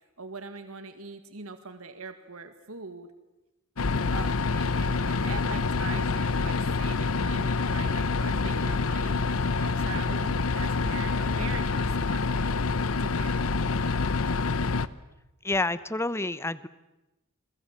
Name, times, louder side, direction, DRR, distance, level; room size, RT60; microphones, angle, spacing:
voice 1, 0.2-3.1 4.1-9.2 9.5-12.6 13.0-14.0, right 4 dB, 80° right, 9 dB, 2.0 m, -42 dB
sound 1, 3.8-14.9, left 4 dB, 75° left, 0.9 m, -27 dB
voice 2, 15.4-16.7, left 2 dB, 10° left, 16 dB, 0.8 m, -28 dB
28.0 x 22.5 x 7.6 m, 0.98 s
head